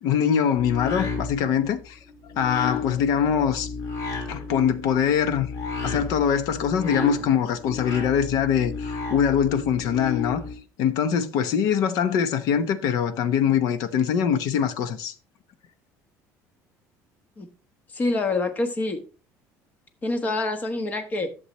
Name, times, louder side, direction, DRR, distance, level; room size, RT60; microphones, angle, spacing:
voice 1, 0.0-2.0 2.4-3.7 4.3-5.5 5.8-10.4 10.8-15.1, left 8 dB, 65° left, 1.0 m, -23 dB
sound 1, 0.6-10.5, left 4 dB, 50° left, 2.4 m, -33 dB
voice 2, 17.9-19.0 20.0-21.3, left 2 dB, 25° left, 1.2 m, -26 dB
11.5 x 7.2 x 3.1 m
cardioid pair, 165°, 7 cm